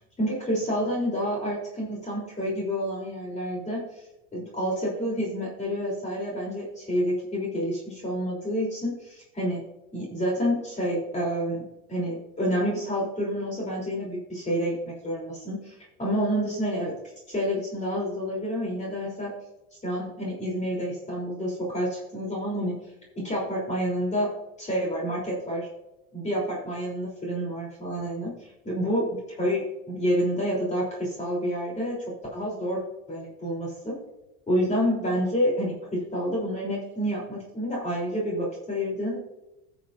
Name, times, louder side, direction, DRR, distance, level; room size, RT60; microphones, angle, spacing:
voice 1, 0.2-4.0 4.3-9.6 9.9-16.9 17.3-19.3 19.8-22.8 23.1-24.3 24.6-25.7 26.1-29.1 29.4-34.0 34.5-39.2, equal, 20° left, -4 dB, 3.4 m, -29 dB
15.0 x 7.0 x 2.6 m, 0.92 s
supercardioid pair, 100°, 33 cm